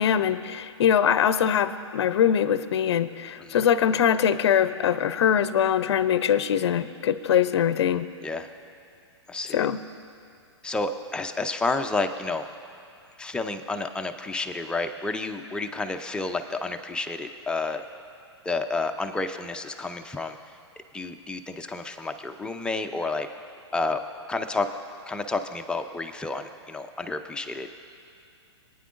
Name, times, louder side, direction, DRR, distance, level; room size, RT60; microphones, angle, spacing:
voice 1, 0.0-8.1 9.5-9.8, left 9 dB, 70° left, 13 dB, 0.5 m, -22 dB
voice 2, 9.3-9.7 10.6-12.5 13.2-17.8 18.4-20.4 20.9-23.3 23.7-24.0 24.3-24.7 25.1-27.7, left 3 dB, 5° left, 6 dB, 0.5 m, -30 dB
23.5 x 9.4 x 2.5 m, 2.7 s
hypercardioid pair, 120°, 15 cm